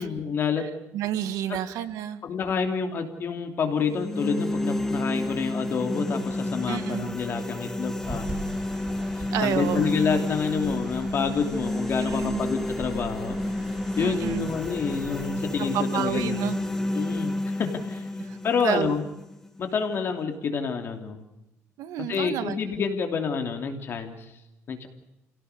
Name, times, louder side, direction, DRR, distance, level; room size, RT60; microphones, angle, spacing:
voice 1, 0.0-0.7 1.5-1.6 2.2-8.3 9.2-13.4 14.0-16.4 16.9-18.1 18.4-19.0 19.6-21.2 22.1-24.2 24.7-24.9, left 6 dB, 45° left, 5 dB, 3.0 m, -28 dB
voice 2, 0.6-2.2 6.7-7.2 9.3-10.0 12.0-12.5 14.0-14.5 15.7-16.6 18.3-18.4 18.6-18.9 21.8-22.5, right 11 dB, 85° right, 10 dB, 1.8 m, -30 dB
sound 1, 3.8-19.8, left 1 dB, 10° left, 2.0 m, -30 dB
sound 2, 8.0-15.3, right 2 dB, 20° right, 3.6 m, -42 dB
28.0 x 17.5 x 6.8 m, 0.91 s
cardioid pair, 160°, 6 cm